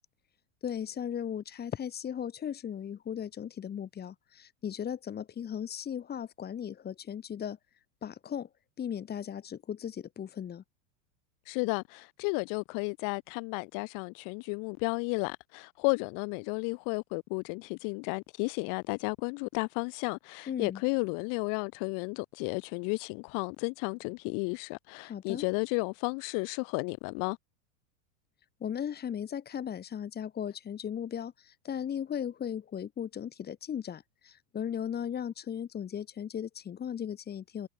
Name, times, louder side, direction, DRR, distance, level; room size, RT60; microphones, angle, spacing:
voice 1, 0.6-8.5 8.8-10.6 20.5-20.8 25.0-25.4 28.6-37.7, left 8 dB, 25° left, 4.7 m, -37 dB
voice 2, 11.4-27.4, left 36 dB, 50° left, 4.5 m, -33 dB
supercardioid pair, 140°, 41 cm